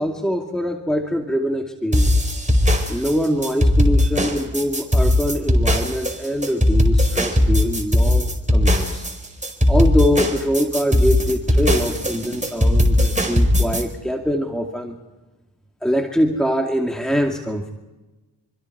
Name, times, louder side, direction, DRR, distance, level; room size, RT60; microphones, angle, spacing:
voice 1, 0.0-2.3 2.9-9.0 9.7-15.0 15.8-17.7, equal, ahead, 3 dB, 2.6 m, -23 dB
sound 1, 1.9-13.8, left 1 dB, 15° right, 4.8 m, -18 dB
26.5 x 24.5 x 4.8 m, 1.1 s
supercardioid pair, 45°, 42 cm